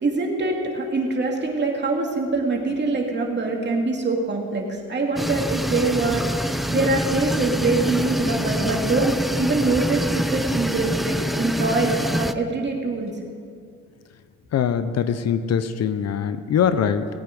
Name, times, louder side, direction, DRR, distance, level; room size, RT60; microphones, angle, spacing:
voice 1, 0.0-13.1, right 3 dB, 35° right, 0 dB, 2.5 m, -24 dB
sound 1, 5.2-12.3, equal, ahead, 0.4 m, -25 dB
voice 2, 14.5-17.1, left 8 dB, 60° left, 12 dB, 0.7 m, -22 dB
18.0 x 8.9 x 5.3 m, 2.2 s
cardioid pair, 90°, 30 cm